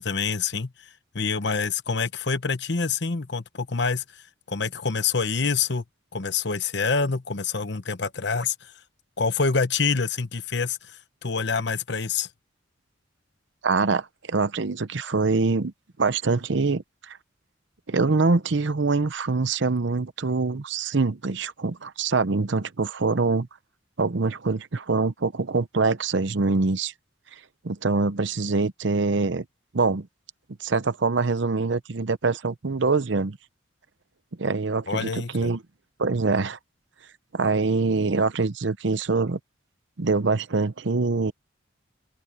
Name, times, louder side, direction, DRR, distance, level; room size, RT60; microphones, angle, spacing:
voice 1, 0.0-5.8 6.1-8.7 9.2-12.3 34.9-35.5, left 5 dB, 55° left, 1.1 m, -27 dB
voice 2, 13.6-15.7 16.0-17.2 17.9-23.5 24.0-26.9 27.6-29.4 29.7-30.1 30.6-33.4 34.4-35.6 36.0-36.6 37.3-39.4 40.0-41.3, right 3 dB, 60° right, 0.8 m, -24 dB
head